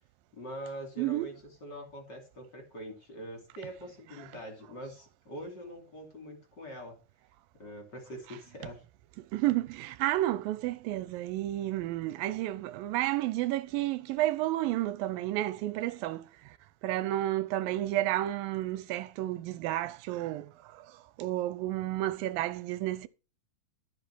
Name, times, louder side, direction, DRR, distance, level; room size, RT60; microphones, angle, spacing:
voice 1, 0.3-1.3 1.6-6.9 7.6-8.8, equal, 30° left, 3.0 m, -43 dB
voice 2, 1.0-1.3 9.3-16.3 16.8-20.8 21.2-23.1, right 15 dB, 85° right, 2.4 m, -31 dB
14.0 x 5.3 x 6.3 m
omnidirectional pair, 4.1 m